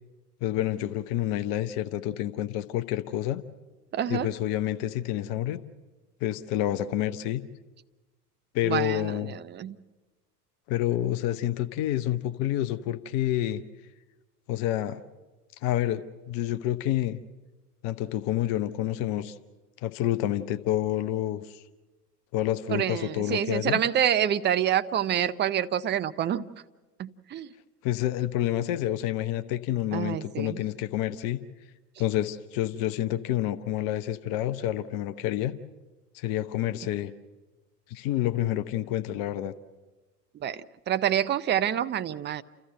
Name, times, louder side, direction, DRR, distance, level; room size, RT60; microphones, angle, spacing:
voice 1, 0.4-3.4 4.1-5.6 6.2-7.4 8.5-9.4 10.7-13.6 14.5-15.0 15.6-17.2 17.8-19.3 19.8-21.6 22.3-23.8 27.8-31.4 32.0-35.5 36.1-37.1 37.9-39.5, left 12 dB, 45° left, 12 dB, 0.9 m, -28 dB
voice 2, 3.9-4.3 8.6-9.8 22.7-26.4 27.0-27.5 29.9-30.6 36.8-36.9 40.3-42.4, right 10 dB, 20° right, 11 dB, 0.6 m, -27 dB
29.5 x 14.0 x 7.7 m, 1.2 s
figure-of-eight pair, 80°, 48 cm